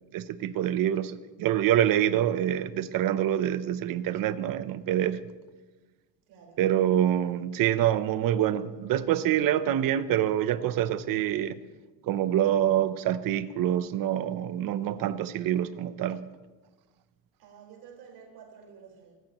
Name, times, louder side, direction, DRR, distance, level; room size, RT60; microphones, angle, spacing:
voice 1, 0.1-5.2 6.6-11.6 12.0-16.2, right 11 dB, 60° right, 0.9 m, -26 dB
voice 2, 6.3-6.6 17.4-19.1, right 6 dB, 75° right, 4.8 m, -50 dB
25.5 x 15.0 x 3.1 m
cardioid pair, 125°, 38 cm